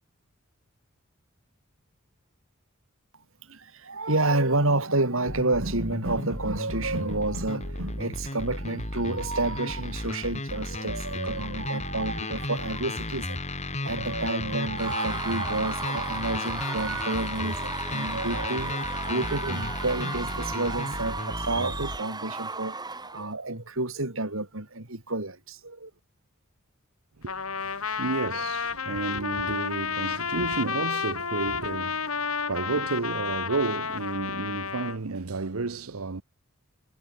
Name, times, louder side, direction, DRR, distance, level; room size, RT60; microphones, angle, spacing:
voice 1, 3.5-13.4 13.8-22.8 23.1-25.9, right 2 dB, 70° right, 4.4 m, -29 dB
sound 1, 5.3-22.0, left 2 dB, 35° left, 4.9 m, -34 dB
Screaming / Cheering / Crowd, 14.8-23.3, right 3 dB, 20° right, 5.4 m, -35 dB
voice 2, 27.2-36.2, right 3 dB, 85° right, 1.0 m, -32 dB
Trumpet, 27.3-35.0, left 6 dB, 85° left, 3.2 m, -31 dB
head